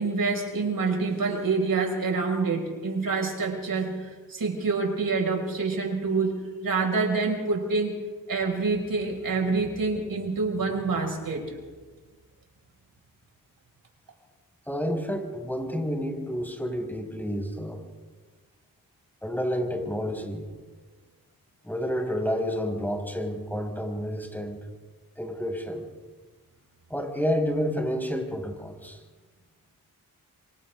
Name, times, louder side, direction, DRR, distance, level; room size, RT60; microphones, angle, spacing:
voice 1, 0.0-7.9 8.3-11.5, right 4 dB, 65° right, 1 dB, 6.0 m, -27 dB
voice 2, 14.7-17.8 19.2-20.5 21.6-24.6 25.2-25.8 26.9-29.0, equal, 5° left, 2 dB, 5.7 m, -30 dB
28.5 x 26.0 x 3.8 m, 1.4 s
cardioid pair, 55°, 37 cm